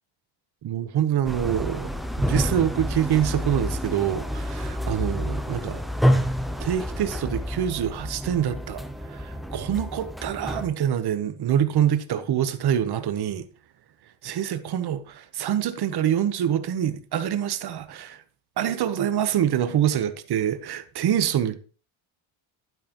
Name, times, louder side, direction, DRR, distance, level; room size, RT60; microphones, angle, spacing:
voice 1, 0.6-1.9 2.2-5.8 6.6-8.8 9.1-13.5 14.2-18.2 18.6-21.6, right 10 dB, 50° right, 1.0 m, -25 dB
sound 1, 1.2-10.7, equal, ahead, 0.4 m, -28 dB
11.5 x 9.0 x 3.0 m
cardioid pair, 135°, 49 cm